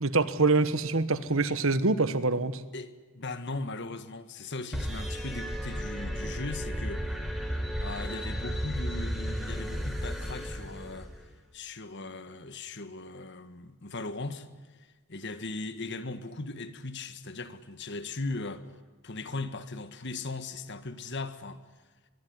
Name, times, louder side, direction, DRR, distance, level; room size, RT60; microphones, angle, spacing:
voice 1, 0.0-2.6, right 3 dB, 60° right, 1.3 m, -25 dB
voice 2, 2.7-7.2 7.8-11.1 11.5-14.5 14.8-18.7 19.0-21.6, left 3 dB, 50° left, 1.7 m, -38 dB
sound 1, 4.7-11.3, equal, ahead, 4.0 m, -34 dB
23.0 x 22.5 x 9.7 m
head